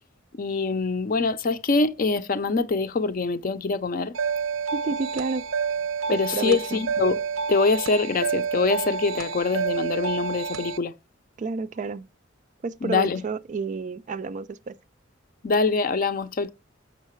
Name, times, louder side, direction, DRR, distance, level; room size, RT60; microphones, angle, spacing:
voice 1, 0.3-4.2 6.1-7.2 7.5-10.9 12.8-13.2 15.4-16.5, left 4 dB, 45° left, 0.5 m, -24 dB
sound 1, 4.1-10.8, right 6 dB, 90° right, 0.6 m, -29 dB
voice 2, 4.7-5.5 6.1-6.8 11.4-12.1 12.6-14.7, right 4 dB, 40° right, 0.3 m, -30 dB
6.6 x 5.4 x 3.1 m
head